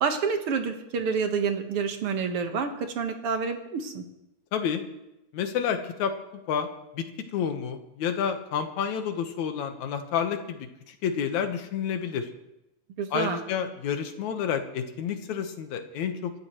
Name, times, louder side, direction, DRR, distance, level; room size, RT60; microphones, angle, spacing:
voice 1, 0.0-4.0 13.0-13.4, right 5 dB, 55° right, 5 dB, 2.1 m, -28 dB
voice 2, 4.5-4.8 5.3-6.1 6.5-6.7 6.9-7.0 7.3-12.3 13.1-16.3, left 7 dB, 80° left, 6 dB, 2.6 m, -29 dB
26.0 x 13.5 x 3.1 m, 0.91 s
omnidirectional pair, 3.3 m